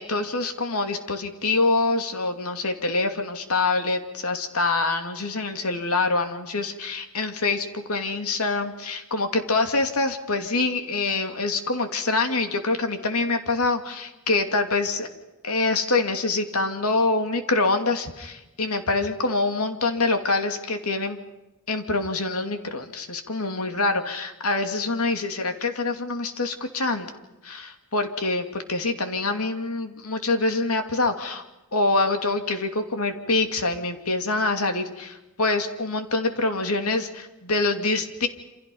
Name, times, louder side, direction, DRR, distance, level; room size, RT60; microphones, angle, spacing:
voice 1, 0.0-15.1 15.4-21.2 21.7-27.1 27.4-31.4 31.7-38.3, left 3 dB, 80° left, 6 dB, 2.7 m, -25 dB
28.5 x 27.0 x 5.5 m, 1.0 s
head